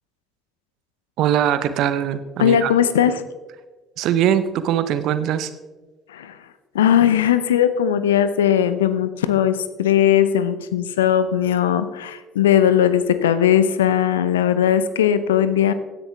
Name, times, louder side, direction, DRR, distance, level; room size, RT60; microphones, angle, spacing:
voice 1, 1.2-2.7 4.0-5.5, right 10 dB, 60° right, 12 dB, 0.8 m, -21 dB
voice 2, 2.4-3.2 6.1-6.4 6.7-15.7, left 10 dB, 80° left, 13 dB, 0.6 m, -18 dB
16.0 x 10.0 x 3.4 m, 1.3 s
figure-of-eight pair, 55°, 0 cm